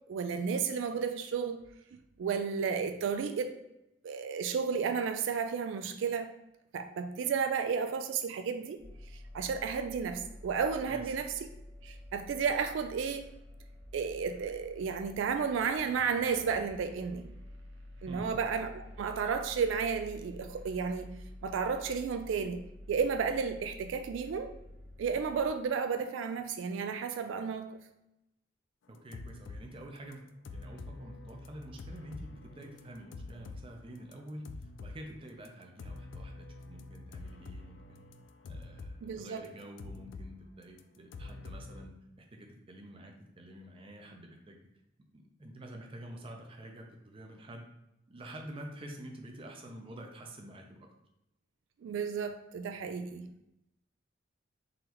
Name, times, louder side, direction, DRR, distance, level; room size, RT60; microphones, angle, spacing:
voice 1, 0.1-1.6 2.2-3.5 4.0-6.3 6.7-8.8 9.3-11.3 11.8-13.3 13.9-17.3 18.0-24.5 25.0-27.7 39.0-39.4 51.8-53.3, right 6 dB, 80° right, 8 dB, 0.3 m, -32 dB
sound 1, 8.8-25.5, left 1 dB, 65° right, 0.7 m, -50 dB
voice 2, 18.1-18.4 28.9-38.0 38.4-44.6 45.1-47.7 48.1-50.9, right 1 dB, 30° right, 2 dB, 0.5 m, -48 dB
sound 2, 29.0-29.7 30.1-33.7 34.0-35.0 35.5-35.6 35.8-39.0 39.3-40.4 40.6-41.9, left 3 dB, 75° left, 0.3 m, -46 dB
3.8 x 3.1 x 3.0 m, 0.87 s
head